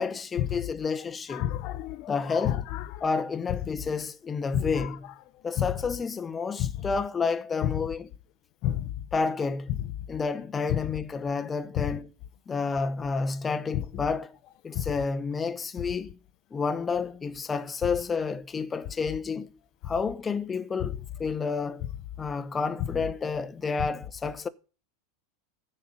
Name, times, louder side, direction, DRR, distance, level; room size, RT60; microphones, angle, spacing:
voice 1, 0.0-1.5 2.1-2.7 3.0-5.1 5.4-8.1 9.1-9.8 10.1-12.1 12.5-14.4 14.6-16.2 16.5-19.5 19.8-21.8 22.2-24.5, left 5 dB, 20° left, 0.9 m, -30 dB
voice 2, 1.3-3.0 4.5-4.9 5.6-5.7 6.6-6.7 7.6-7.7 8.6-8.9 10.7-10.8 11.8-11.9 13.7-13.8 14.8-14.9, left 12 dB, 50° left, 0.7 m, -29 dB
15.0 x 5.6 x 8.9 m
supercardioid pair, 135°, 0 cm